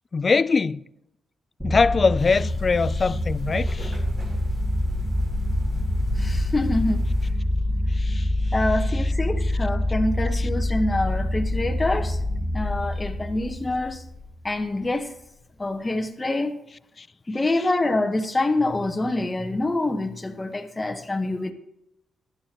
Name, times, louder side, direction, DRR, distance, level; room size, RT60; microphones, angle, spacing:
voice 1, 0.1-0.8 1.6-4.0 7.9-8.5 10.4-10.5 17.0-17.1, left 4 dB, 35° left, 0.3 m, -23 dB
sound 1, 1.6-14.5, left 1 dB, 5° right, 2.2 m, -26 dB
sound 2, 2.2-7.3, right 2 dB, 55° right, 3.8 m, -34 dB
voice 2, 6.2-7.0 8.5-12.2 12.5-14.0 14.4-15.1 15.6-16.5 17.3-21.5, left 2 dB, 20° left, 1.2 m, -26 dB
13.5 x 11.5 x 3.0 m
cardioid pair, 90°, 0 cm